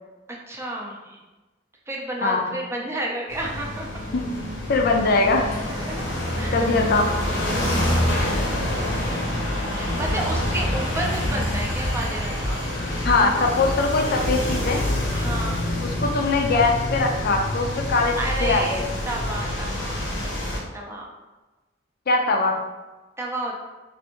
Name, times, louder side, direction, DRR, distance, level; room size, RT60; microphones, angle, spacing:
voice 1, 0.3-1.2 1.9-3.9 5.7-6.1 6.4-6.6 7.5-8.2 9.7-12.6 15.1-15.6 18.0-21.1 23.2-23.6, right 1 dB, 15° right, -1 dB, 0.4 m, -31 dB
sound 1, 3.3-20.6, left 1 dB, 85° left, 0.9 m, -26 dB
voice 2, 4.7-5.6 6.5-7.2 13.0-14.8 15.8-19.0 22.1-22.6, left 3 dB, 55° left, 2 dB, 0.4 m, -21 dB
3.3 x 2.5 x 2.9 m, 1.2 s
head